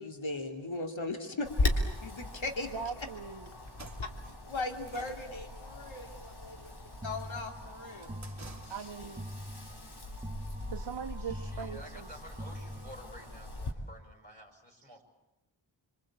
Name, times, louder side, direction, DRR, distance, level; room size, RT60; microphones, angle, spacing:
voice 1, 0.0-1.7 2.0-3.1 4.0-4.1 4.5-6.8 7.0-8.2 8.6-8.8, left 2 dB, 75° left, 2.9 m, -38 dB
Wind, 1.4-13.7, left 2 dB, 55° left, 3.4 m, -39 dB
voice 2, 2.7-3.5 8.7-9.3 10.7-12.1, right 6 dB, 60° right, 0.9 m, -40 dB
sound 1, 3.7-9.2, right 3 dB, 35° right, 2.4 m, -54 dB
sound 2, 7.0-13.4, equal, 15° right, 1.4 m, -45 dB
voice 3, 11.2-15.0, equal, 20° left, 5.9 m, -51 dB
27.5 x 24.5 x 8.7 m
wide cardioid pair, 60°, 47 cm